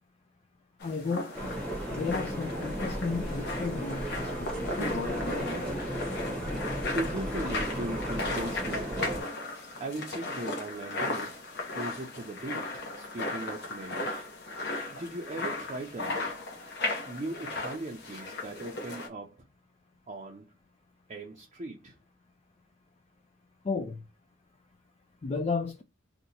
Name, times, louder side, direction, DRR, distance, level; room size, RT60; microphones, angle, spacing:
sound 1, 0.8-19.1, left 2 dB, 55° left, 0.8 m, -36 dB
voice 1, 0.8-1.3 1.9-4.5 23.6-24.0 25.2-25.8, left 4 dB, 30° left, 0.3 m, -33 dB
sound 2, 1.3-9.2, equal, 5° left, 0.9 m, -35 dB
voice 2, 6.9-9.4 9.8-11.3 11.7-14.2 14.9-16.4 17.1-19.4 20.1-20.5 21.1-22.0, right 2 dB, 30° right, 0.5 m, -38 dB
2.8 x 2.2 x 3.9 m
head